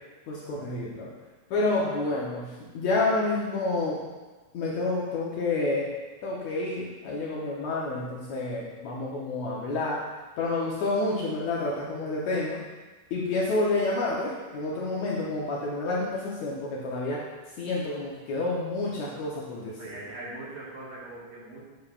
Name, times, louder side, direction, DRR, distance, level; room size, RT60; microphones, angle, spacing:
voice 1, 0.3-1.1 1.5-2.5 2.7-4.0 4.5-5.9 6.2-10.0 10.4-12.6 13.1-17.2 17.6-19.8, left 2 dB, 80° left, -5 dB, 1.6 m, -29 dB
voice 2, 1.8-2.1 19.8-21.6, right 2 dB, 55° right, -7 dB, 2.5 m, -41 dB
9.2 x 6.8 x 2.4 m, 1.3 s
omnidirectional pair, 4.4 m